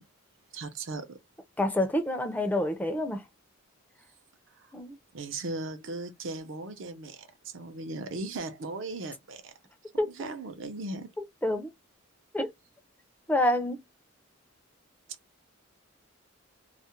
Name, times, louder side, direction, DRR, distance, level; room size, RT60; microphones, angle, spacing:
voice 1, 0.5-1.2 4.6-4.7 5.1-9.5 10.1-11.1, right 2 dB, 60° right, 0.6 m, -37 dB
voice 2, 1.6-3.2 4.7-5.0 10.0-10.1 11.4-11.7 12.3-12.5 13.3-13.8, left 1 dB, 10° left, 0.4 m, -27 dB
2.4 x 2.1 x 2.8 m
head